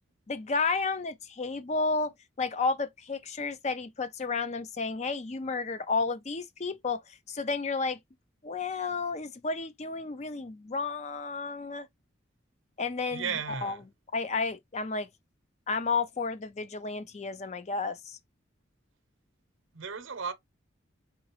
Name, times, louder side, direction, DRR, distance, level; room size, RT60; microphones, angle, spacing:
voice 1, 0.3-8.0 8.4-11.9 12.8-13.7 14.1-15.1 15.7-18.2, left 4 dB, 35° left, 0.4 m, -32 dB
voice 2, 13.1-13.8 19.7-20.3, right 6 dB, 75° right, 0.7 m, -34 dB
3.9 x 3.7 x 2.8 m
head